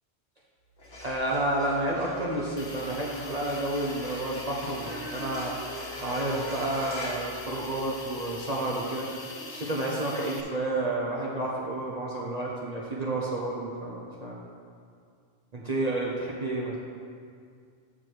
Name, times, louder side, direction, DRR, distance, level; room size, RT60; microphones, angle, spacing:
sound 1, 0.7-8.1, left 1 dB, 60° left, 1.6 m, -43 dB
voice 1, 1.0-5.5 6.0-9.1 9.5-14.4 15.5-16.7, right 2 dB, 40° right, -4 dB, 0.8 m, -30 dB
Hiss, 2.6-10.4, left 3 dB, 45° left, 0.4 m, -43 dB
Female singing, 4.8-11.1 11.8-11.9, equal, 85° right, 1.5 m, -45 dB
6.6 x 6.3 x 4.6 m, 2.2 s
omnidirectional pair, 1.2 m